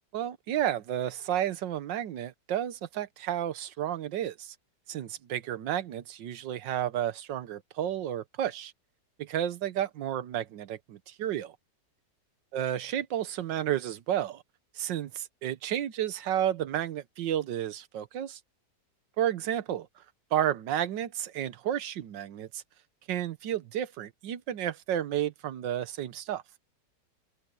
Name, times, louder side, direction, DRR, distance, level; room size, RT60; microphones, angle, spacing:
voice 1, 0.1-4.5 4.9-8.7 9.2-11.5 12.5-14.4 14.7-18.4 19.2-20.0 20.3-22.6 23.1-26.4, right 11 dB, 90° right, 1.6 m, -32 dB
omnidirectional pair, 1.9 m